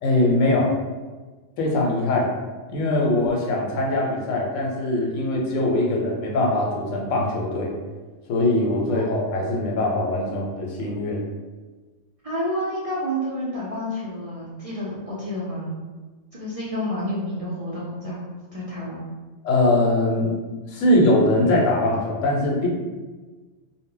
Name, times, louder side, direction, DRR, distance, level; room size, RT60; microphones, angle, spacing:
voice 1, 0.0-0.7 1.6-2.3 2.7-7.7 8.3-11.2 19.4-20.3 20.7-22.7, left 1 dB, 90° left, -2 dB, 0.9 m, -22 dB
voice 2, 12.2-15.8 16.3-19.1, equal, 65° right, -7 dB, 0.3 m, -29 dB
2.0 x 2.0 x 3.7 m, 1.3 s
omnidirectional pair, 1.3 m